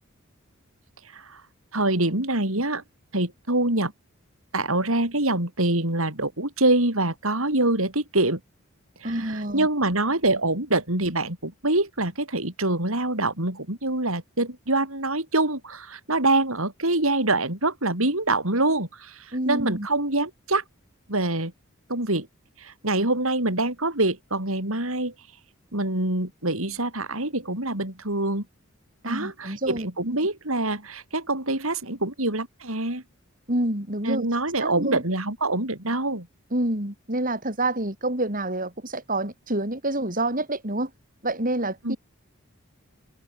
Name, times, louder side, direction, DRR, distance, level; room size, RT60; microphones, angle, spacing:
voice 1, 1.1-1.4 1.7-2.8 3.1-3.9 4.5-8.4 9.0-20.6 21.1-21.5 21.9-22.3 22.6-25.1 25.7-28.5 29.0-33.0 34.0-36.3 41.8-42.0, right 2 dB, 75° right, 7.0 m, -25 dB
voice 2, 9.0-9.7 19.3-19.9 29.0-29.9 33.5-34.3 34.6-35.0 36.5-40.9 41.2-42.0, right 1 dB, 40° right, 5.8 m, -27 dB
head